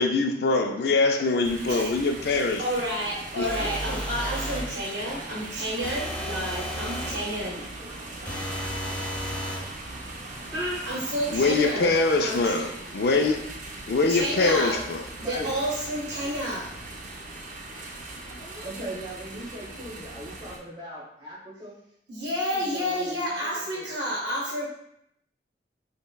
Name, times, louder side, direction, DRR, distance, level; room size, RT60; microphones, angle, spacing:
voice 1, 0.0-2.6 3.4-3.5 11.3-13.4 13.9-15.0, left 3 dB, 60° left, 4 dB, 0.4 m, -23 dB
sound 1, 1.4-20.6, right 2 dB, 45° right, 0.4 m, -40 dB
voice 2, 2.6-7.7 10.9-12.5 14.1-14.8 15.2-16.7 22.1-24.6, equal, 70° right, -5 dB, 0.8 m, -30 dB
sound 2, 3.4-4.7 5.8-7.2 8.3-9.7, equal, 5° left, 0.5 m, -33 dB
voice 3, 7.3-8.0 10.5-10.8 15.2-15.5 16.2-16.5 18.4-21.8 22.5-23.3 23.7-23.9, equal, 25° right, -7 dB, 1.1 m, -38 dB
5.2 x 2.1 x 2.3 m, 0.75 s
head